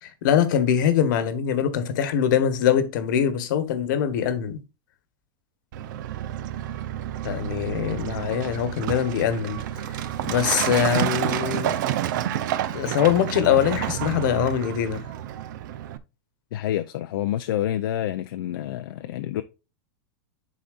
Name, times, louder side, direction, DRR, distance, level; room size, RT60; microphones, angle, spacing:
voice 1, 0.0-4.6 7.2-9.6 10.2-11.8 12.7-15.1, left 9 dB, 60° left, 1.3 m, -23 dB
Truck, 5.7-16.0, right 11 dB, 60° right, 0.7 m, -29 dB
voice 2, 16.5-19.4, left 12 dB, 75° left, 0.5 m, -28 dB
11.0 x 4.2 x 2.5 m
supercardioid pair, 165°, 12 cm